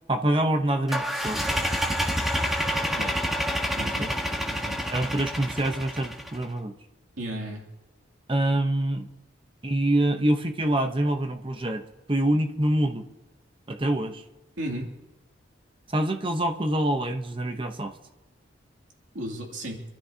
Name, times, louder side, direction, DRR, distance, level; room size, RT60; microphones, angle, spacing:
voice 1, 0.1-1.4 3.8-4.1 4.9-6.7 8.3-9.1 9.6-11.8 12.1-13.1 13.7-14.2 15.9-17.9, right 1 dB, 25° right, 6 dB, 0.9 m, -25 dB
sound 1, 0.9-6.4, equal, ahead, 1.3 m, -28 dB
voice 2, 3.7-4.1 4.5-4.8 7.2-7.6 14.6-14.9 19.1-19.8, right 1 dB, 85° right, 0 dB, 2.7 m, -34 dB
26.5 x 13.0 x 2.8 m, 1.1 s
head